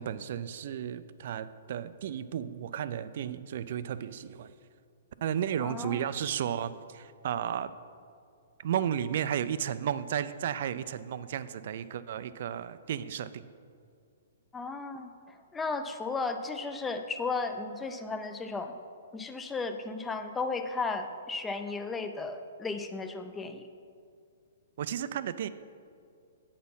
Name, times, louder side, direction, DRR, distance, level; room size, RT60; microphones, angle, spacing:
voice 1, 0.0-4.5 5.2-7.7 8.6-13.5 24.8-25.5, right 9 dB, 60° right, 14 dB, 0.3 m, -33 dB
voice 2, 5.6-6.1 14.5-18.7 19.1-23.6, left 4 dB, 10° left, 7 dB, 0.5 m, -35 dB
8.5 x 4.2 x 5.5 m, 2.3 s
hypercardioid pair, 130°, 0 cm